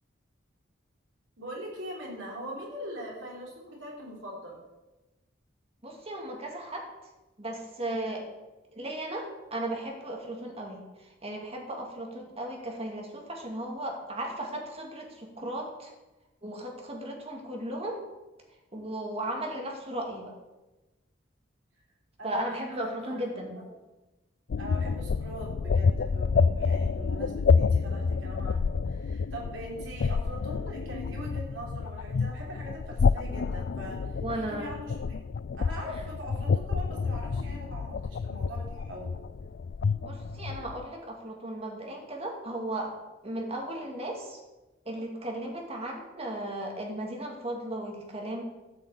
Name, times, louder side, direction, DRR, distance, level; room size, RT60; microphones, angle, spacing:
voice 1, 1.4-4.6 22.2-23.1 24.6-34.9 35.5-37.9 38.2-39.1, equal, 85° right, -3 dB, 4.4 m, -41 dB
voice 2, 5.8-6.9 7.4-8.3 8.7-15.9 16.4-18.0 18.7-20.3 22.2-23.6 34.2-34.7 40.0-42.9 43.2-44.4 44.8-48.4, right 1 dB, 30° right, 1 dB, 2.6 m, -36 dB
sound 1, 24.5-40.9, left 5 dB, 60° left, 0.4 m, -28 dB
13.5 x 6.2 x 8.5 m, 1.1 s
head